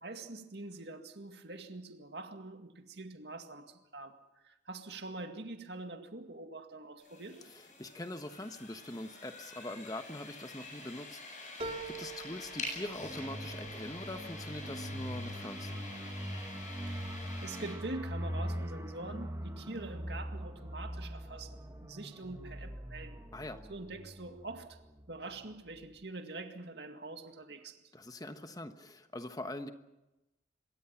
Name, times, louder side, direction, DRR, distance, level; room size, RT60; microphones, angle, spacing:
voice 1, 0.0-4.2 4.4-7.4 16.9-23.2 23.7-24.8 25.1-27.8, right 2 dB, 65° right, 2.1 m, -45 dB
sound 1, 7.0-17.7, left 2 dB, 45° left, 7.8 m, -47 dB
voice 2, 7.4-15.9 23.3-23.6 27.9-29.7, left 1 dB, 20° left, 1.2 m, -43 dB
sound 2, 11.6-16.4 16.8-17.5 17.9-18.0, right 3 dB, 35° right, 2.9 m, -47 dB
sound 3, 13.0-25.4 25.7-25.9, equal, 15° right, 1.3 m, -42 dB
25.5 x 23.0 x 5.9 m
head